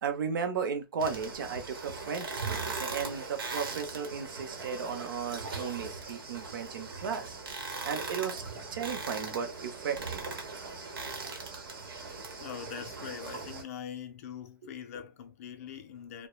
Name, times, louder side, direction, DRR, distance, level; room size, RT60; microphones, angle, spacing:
voice 1, 0.0-7.4 7.8-8.4 8.7-10.2, right 6 dB, 65° right, 0.7 m, -35 dB
sound 1, 1.0-13.6, right 4 dB, 85° right, 1.0 m, -39 dB
voice 2, 12.4-16.3, left 8 dB, 40° left, 0.4 m, -42 dB
3.0 x 2.1 x 2.2 m
hypercardioid pair, 165°, 12 cm